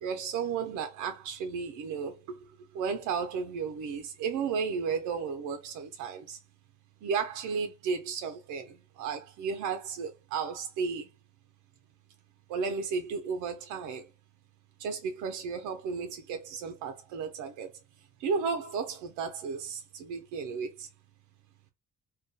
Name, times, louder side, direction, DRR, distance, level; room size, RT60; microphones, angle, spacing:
voice 1, 0.0-2.1 2.7-6.4 7.0-11.1 12.5-14.0 14.8-17.7 18.2-20.9, right 5 dB, 90° right, 0.5 m, -33 dB
2.2 x 2.2 x 2.6 m
cardioid pair, 90°, 30 cm